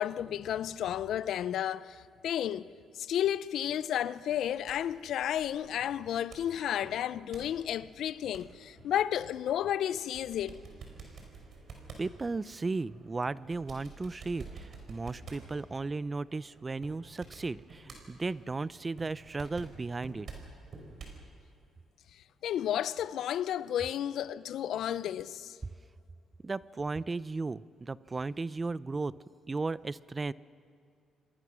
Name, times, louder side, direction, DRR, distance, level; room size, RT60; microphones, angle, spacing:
voice 1, 0.0-2.7 3.0-10.6 22.4-25.5, left 10 dB, 75° left, 0.5 m, -32 dB
sound 1, 4.3-21.2, right 4 dB, 55° right, 5.2 m, -51 dB
voice 2, 12.0-20.3 26.4-29.1 29.5-30.3, right 3 dB, 25° right, 0.5 m, -35 dB
27.5 x 20.5 x 6.2 m
cardioid pair, 90°, 0 cm